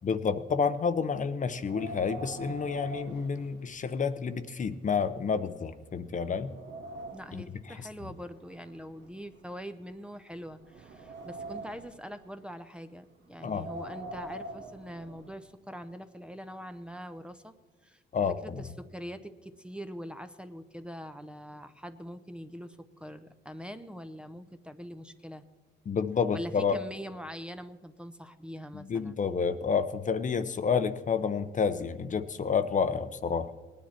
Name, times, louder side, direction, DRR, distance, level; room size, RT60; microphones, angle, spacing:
voice 1, 0.0-6.5 7.3-7.8 13.4-13.7 18.1-18.6 25.9-26.8 28.7-33.6, left 6 dB, 40° left, 11 dB, 0.8 m, -29 dB
Wind, 1.5-4.1 4.5-4.6 5.3-5.4 5.9-7.5 8.3-9.9 10.4-12.0 13.3-15.4, right 1 dB, 70° right, 1.5 m, -44 dB
voice 2, 7.1-17.5 17.8-18.0 18.4-25.4 26.3-29.2, equal, 5° right, 8 dB, 0.7 m, -43 dB
19.0 x 10.0 x 4.4 m, 1.3 s
cardioid pair, 90°, 20 cm